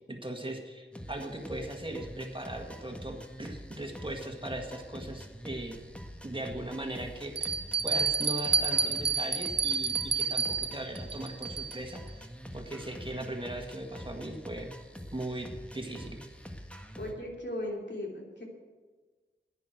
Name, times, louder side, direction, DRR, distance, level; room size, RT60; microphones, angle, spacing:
voice 1, 0.1-5.8 6.2-7.5 7.8-12.3 12.5-14.7 15.1-15.5 15.7-16.2, right 1 dB, 25° right, 2 dB, 1.8 m, -39 dB
sound 1, 0.9-17.1, equal, 5° left, 1.5 m, -45 dB
Bell, 5.7-5.8 6.5-6.6 7.4-11.9, right 5 dB, 60° right, 0.7 m, -29 dB
voice 2, 17.0-18.4, left 1 dB, 70° left, -1 dB, 3.0 m, -37 dB
10.5 x 10.0 x 7.9 m, 1.4 s
wide cardioid pair, 40°, 19 cm